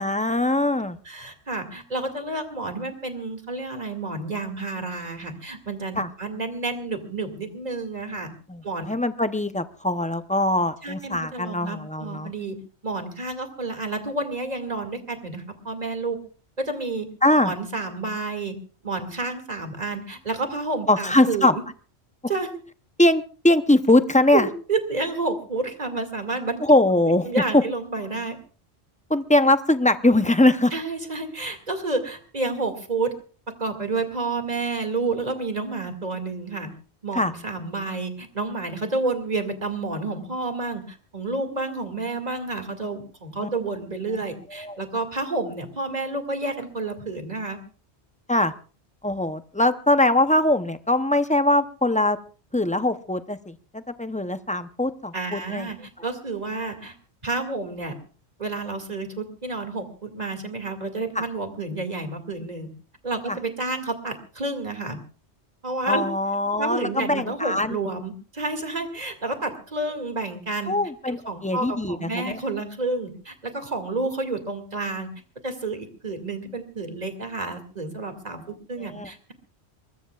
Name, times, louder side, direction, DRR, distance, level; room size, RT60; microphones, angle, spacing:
voice 1, 0.0-1.0 6.0-6.1 8.5-12.3 17.2-17.5 20.9-21.6 23.0-24.5 26.6-27.3 27.5-27.6 29.1-30.7 37.1-37.3 43.4-43.5 44.6-44.8 48.3-48.5 49.0-52.2 52.5-55.7 61.2-61.3 63.3-63.4 65.9-67.8 70.7-72.4 78.8-79.1, left 1 dB, 10° left, 10 dB, 0.6 m, -21 dB
voice 2, 1.1-8.3 8.6-8.9 10.8-12.6 12.8-16.2 16.6-17.1 17.4-18.6 18.8-21.6 22.3-22.5 24.3-26.6 27.1-28.4 30.7-33.1 33.5-36.7 37.0-47.6 55.1-56.9 57.2-57.9 58.4-62.7 63.0-65.0 65.6-66.1 66.6-70.7 71.1-75.1 75.4-79.3, right 3 dB, 40° right, 6 dB, 2.4 m, -30 dB
23.5 x 21.0 x 2.4 m, 0.38 s
omnidirectional pair, 1.1 m